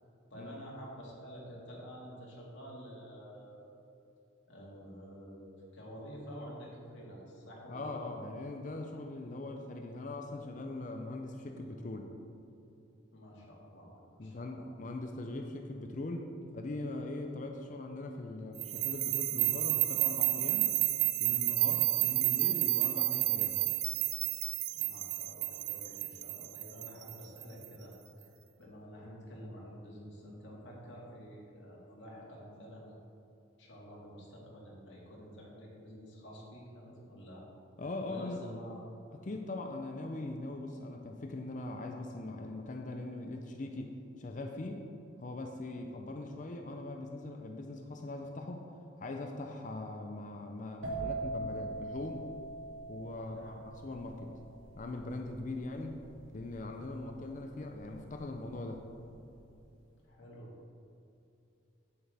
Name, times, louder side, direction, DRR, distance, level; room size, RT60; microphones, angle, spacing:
voice 1, 0.3-3.7 4.5-8.0 13.1-14.7 24.7-33.0 33.6-37.5 38.0-38.8 53.3-53.6 60.0-60.5, equal, 70° left, -4 dB, 2.1 m, -49 dB
voice 2, 7.7-12.1 14.2-16.3 16.5-20.8 21.2-23.7 37.8-38.4 39.1-44.9 45.2-48.7 49.0-52.3 52.9-54.3 54.8-56.0 56.3-58.9, left 2 dB, 40° left, 3 dB, 0.5 m, -41 dB
sound 1, 18.6-27.7, right 17 dB, 55° right, 0.3 m, -31 dB
sound 2, 50.8-58.4 58.7-59.2, right 2 dB, 85° right, 1.8 m, -42 dB
8.8 x 8.4 x 3.4 m, 2.8 s
head